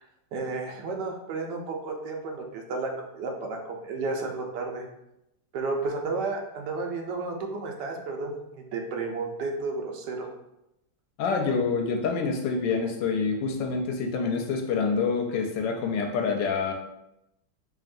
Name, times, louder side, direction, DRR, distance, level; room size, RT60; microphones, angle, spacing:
voice 1, 0.3-4.8 5.5-10.3, right 3 dB, 70° right, 1 dB, 1.2 m, -32 dB
voice 2, 11.2-16.7, left 5 dB, 75° left, 3 dB, 1.2 m, -27 dB
4.9 x 2.9 x 2.5 m, 0.87 s
omnidirectional pair, 2.1 m